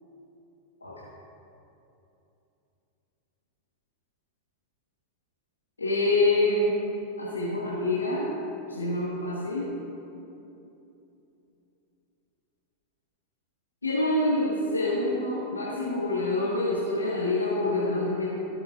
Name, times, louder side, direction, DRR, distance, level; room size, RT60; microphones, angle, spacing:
voice 1, 5.8-6.7 7.2-8.3 8.7-9.7 13.8-18.3, left 2 dB, 80° left, -7 dB, 1.4 m, -26 dB
15.5 x 7.6 x 2.5 m, 2.9 s
figure-of-eight pair, 90°, 0 cm